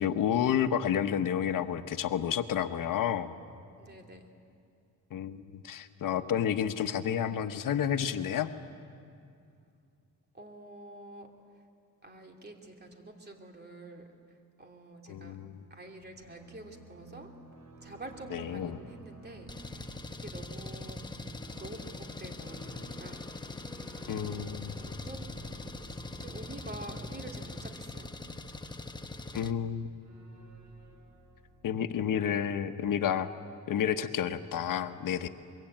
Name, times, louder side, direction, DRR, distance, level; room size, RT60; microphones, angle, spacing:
voice 1, 0.0-3.3 5.1-8.5 15.1-15.6 18.3-18.8 24.1-24.7 29.3-29.9 31.6-33.3 33.7-35.3, left 9 dB, 80° left, 9 dB, 1.0 m, -30 dB
voice 2, 3.8-4.3 10.3-11.3 12.0-14.1 14.6-15.4 15.7-17.3 17.8-21.0 21.6-23.2 23.7-23.8 24.3-25.3 26.2-28.1, right 1 dB, 30° right, 2 dB, 2.9 m, -47 dB
sound 1, 16.0-32.6, right 2 dB, 60° right, 4.3 m, -53 dB
Engine, 19.5-29.5, left 2 dB, 15° left, 1.0 m, -42 dB
24.0 x 22.5 x 8.9 m, 2.4 s
cardioid pair, 115°, 33 cm